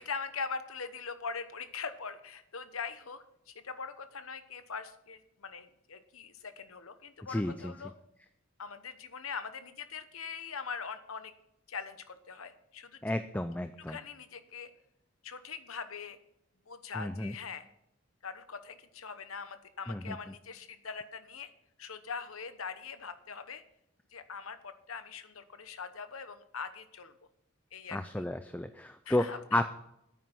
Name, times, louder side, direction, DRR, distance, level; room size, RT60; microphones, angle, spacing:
voice 1, 0.0-7.9 8.6-11.3 11.7-13.0 13.9-14.7 15.2-16.2 16.7-17.7 18.2-21.5 21.8-23.6 24.1-27.1 27.7-28.0 29.0-29.7, left 5 dB, 80° left, 11 dB, 1.0 m, -42 dB
voice 2, 7.3-7.7 13.0-14.0 17.0-17.3 19.9-20.2 27.9-29.7, left 1 dB, 5° left, 10 dB, 0.3 m, -32 dB
9.3 x 9.1 x 6.1 m, 0.80 s
head